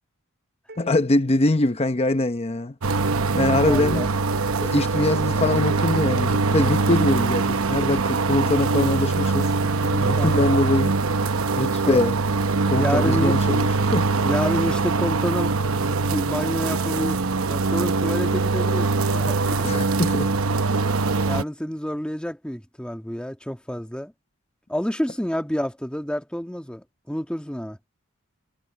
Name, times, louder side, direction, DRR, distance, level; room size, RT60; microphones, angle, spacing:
sound 1, 0.7-2.7, right 2 dB, 50° right, 6.8 m, -50 dB
voice 1, 0.8-2.8 3.3-4.1 4.6-11.0 11.5-12.2 12.7-14.1 19.6-20.3, left 2 dB, 30° left, 0.8 m, -23 dB
sound 2, 2.8-21.4, right 3 dB, 70° right, 0.9 m, -22 dB
voice 2, 3.7-4.1 9.9-10.3 11.9-12.0 12.8-13.4 14.2-19.6 21.3-24.1 24.7-27.8, equal, 5° left, 1.7 m, -29 dB
head